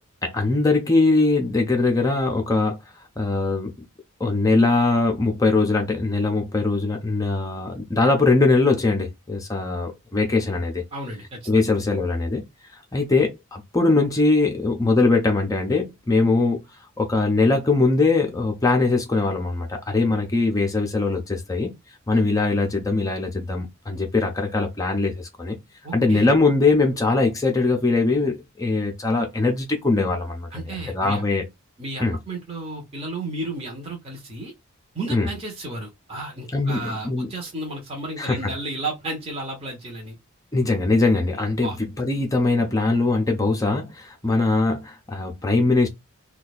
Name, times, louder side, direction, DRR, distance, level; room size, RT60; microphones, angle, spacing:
voice 1, 0.2-2.8 3.2-3.7 4.2-10.8 11.5-12.4 12.9-16.6 17.0-21.7 22.1-25.6 25.9-31.4 32.0-32.2 35.1-35.3 36.5-37.3 38.2-38.5 40.5-45.9, left 3 dB, 15° left, 0.5 m, -21 dB
voice 2, 10.9-11.6 25.8-26.3 30.5-31.2 31.8-34.5 34.9-40.2 41.6-41.8, right 2 dB, 25° right, 0.8 m, -33 dB
2.7 x 2.2 x 4.1 m
head